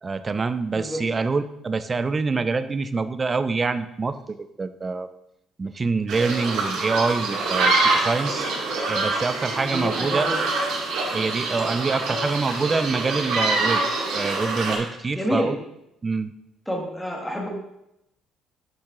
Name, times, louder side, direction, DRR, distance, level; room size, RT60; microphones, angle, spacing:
voice 1, 0.0-5.1 5.6-8.5 8.9-10.3 11.1-13.8 14.1-15.6 16.0-16.3, right 4 dB, 25° right, 11 dB, 0.3 m, -26 dB
sound 1, 6.1-14.8, right 3 dB, 80° right, 2.1 m, -25 dB
voice 2, 9.5-10.4 15.1-15.5 16.7-17.5, equal, 5° left, -1 dB, 1.2 m, -28 dB
7.2 x 4.6 x 3.7 m, 0.83 s
cardioid pair, 130°, 0 cm